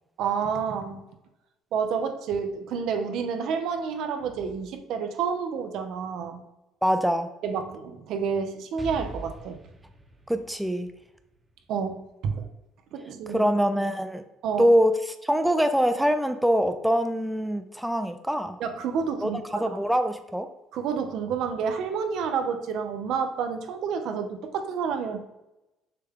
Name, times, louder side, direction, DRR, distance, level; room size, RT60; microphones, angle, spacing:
voice 1, 0.2-1.0 1.7-6.4 7.4-9.6 11.7-12.5 12.9-13.4 14.4-14.7 18.6-19.8 20.7-25.2, right 6 dB, 75° right, 6 dB, 0.6 m, -29 dB
voice 2, 6.8-7.3 10.3-10.9 13.3-14.2 14.6-18.6 19.2-20.5, equal, 5° right, 8 dB, 0.4 m, -24 dB
Explosion, 8.8-12.5, right 1 dB, 20° right, 0.9 m, -43 dB
6.6 x 2.3 x 3.6 m, 0.93 s
cardioid pair, 95°, 0 cm